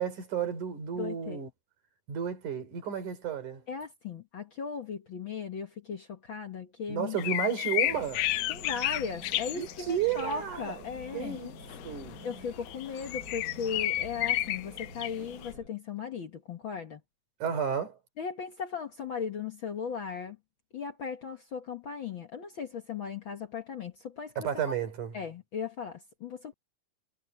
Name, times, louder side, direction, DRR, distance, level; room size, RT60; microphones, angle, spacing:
voice 1, 0.0-1.5 2.1-3.6 6.9-8.3 9.5-10.7 11.1-11.6 11.8-12.2 17.4-18.0 24.4-25.1, right 8 dB, 75° right, 4.8 m, -32 dB
voice 2, 0.9-1.4 3.7-7.2 8.5-11.4 12.2-17.0 18.2-20.4 20.7-24.7 25.1-26.5, left 6 dB, 50° left, 1.6 m, -37 dB
sound 1, 7.2-10.4 10.6-10.8 11.6-15.5, left 15 dB, 75° left, 2.1 m, -32 dB
sound 2, 7.9-15.7, left 1 dB, 25° left, 6.4 m, -48 dB
omnidirectional pair, 3.6 m